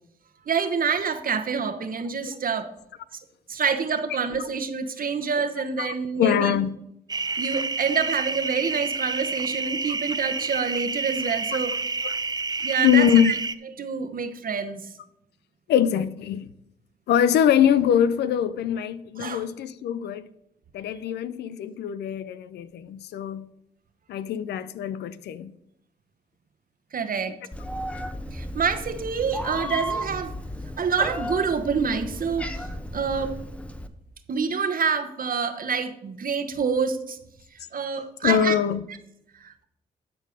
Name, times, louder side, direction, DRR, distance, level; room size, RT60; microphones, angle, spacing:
voice 1, 0.5-2.7 3.5-6.5 7.4-11.7 12.6-13.3 13.8-14.8 19.2-19.4 26.9-27.3 28.3-30.3 30.8-32.7 32.9-33.4 34.3-37.2 37.7-38.6 39.3-39.7, right 6 dB, 55° right, 1.1 m, -27 dB
voice 2, 5.8-6.7 11.5-11.6 12.0-12.1 12.8-13.3 15.7-16.5 17.1-20.3 20.7-23.5 24.1-25.5 38.2-38.9, left 9 dB, 75° left, 0.5 m, -23 dB
sound 1, 7.1-13.5, right 4 dB, 25° right, 0.6 m, -29 dB
Meow, 27.5-33.9, equal, 5° left, 1.0 m, -34 dB
12.5 x 4.6 x 5.1 m
hypercardioid pair, 45°, 18 cm